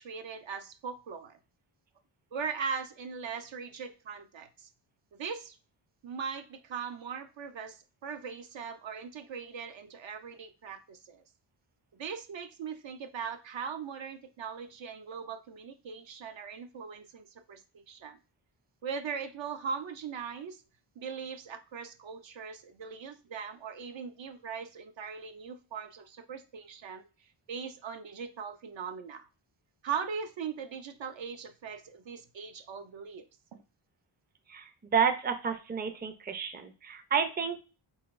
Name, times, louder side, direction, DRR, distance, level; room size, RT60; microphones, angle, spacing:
voice 1, 0.0-1.4 2.3-4.7 5.2-5.6 6.0-11.2 11.9-18.2 18.8-20.6 21.0-27.0 27.5-29.3 29.8-33.2 33.5-33.6, right 6 dB, 65° right, 8 dB, 0.6 m, -40 dB
voice 2, 34.5-37.6, right 6 dB, 20° right, 7 dB, 0.5 m, -30 dB
4.0 x 3.9 x 2.5 m, 0.33 s
wide cardioid pair, 100°, 50 cm